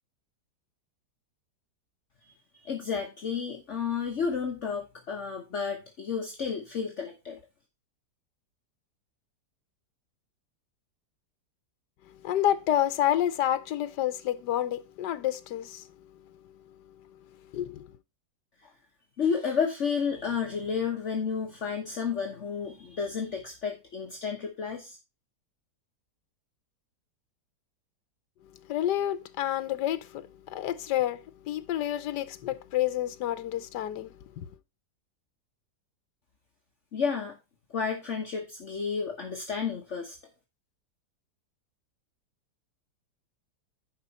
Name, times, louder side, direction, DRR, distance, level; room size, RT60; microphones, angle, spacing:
voice 1, 2.2-7.4 18.6-18.7 19.2-25.0 36.9-37.4 37.7-40.2, left 6 dB, 45° left, 1.4 m, -31 dB
voice 2, 12.2-15.8 17.5-17.9 28.7-34.5, left 12 dB, 85° left, 1.4 m, -29 dB
10.5 x 5.2 x 4.1 m
omnidirectional pair, 1.8 m